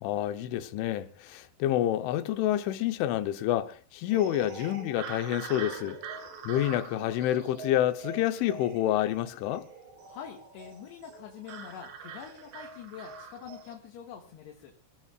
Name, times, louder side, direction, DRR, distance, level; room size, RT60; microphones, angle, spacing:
voice 1, 0.0-6.0 6.5-9.7, left 12 dB, 85° left, 3.5 m, -28 dB
sound 1, 4.1-13.8, right 5 dB, 70° right, 4.4 m, -44 dB
voice 2, 10.0-14.7, left 8 dB, 70° left, 3.5 m, -45 dB
28.0 x 17.0 x 2.4 m
omnidirectional pair, 5.4 m